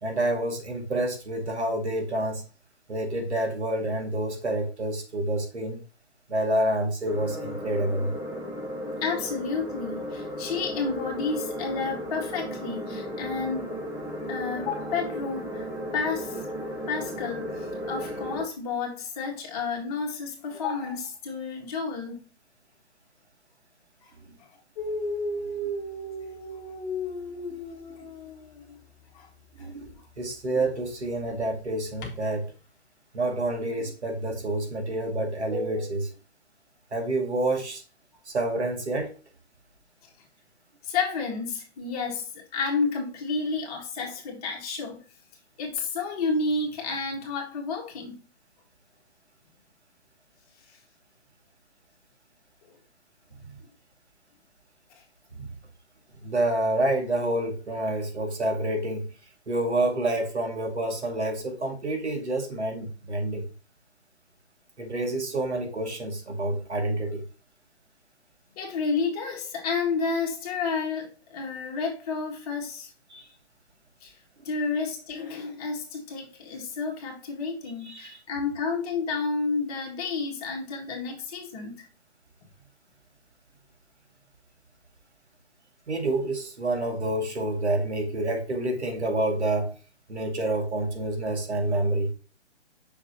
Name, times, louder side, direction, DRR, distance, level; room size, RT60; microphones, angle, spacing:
voice 1, 0.0-2.4 2.9-5.8 6.3-8.1 24.3-24.4 25.5-25.7 27.5-27.6 28.0-28.1 29.6-32.5 33.1-36.2 36.9-37.8 38.3-39.1 53.5-53.6 55.3-55.5 56.2-59.1 59.5-63.5 64.8-67.2 73.1-73.3 77.8-78.2 85.9-89.8 90.1-92.1, right 1 dB, 85° right, 2.2 m, -28 dB
sound 1, 7.1-18.4, equal, 10° right, 0.9 m, -35 dB
voice 2, 9.0-13.7 14.3-15.7 15.9-16.4 16.9-22.3 24.0-24.1 29.1-29.3 29.6-29.7 40.8-45.0 45.6-48.2 68.6-72.9 74.0-74.1 74.4-81.8, left 4 dB, 35° left, 1.9 m, -31 dB
Dog, 24.8-28.7 29.8-30.0 32.0-32.2, left 1 dB, 10° left, 0.5 m, -34 dB
7.0 x 5.8 x 2.8 m
figure-of-eight pair, 140°, 33 cm